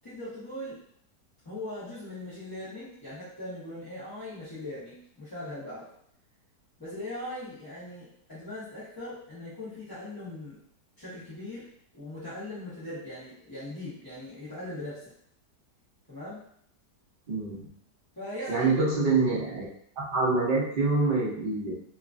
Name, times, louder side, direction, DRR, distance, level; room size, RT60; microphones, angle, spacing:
voice 1, 0.0-0.8 1.4-5.9 6.8-10.6 11.0-11.7 11.9-15.1 16.1-16.4 18.2-18.7, left 1 dB, 30° left, -12 dB, 0.4 m, -40 dB
voice 2, 17.3-17.7 18.5-19.7 20.0-21.7, right 3 dB, 75° right, -6 dB, 0.4 m, -26 dB
2.9 x 2.4 x 2.4 m, 0.66 s
omnidirectional pair, 1.8 m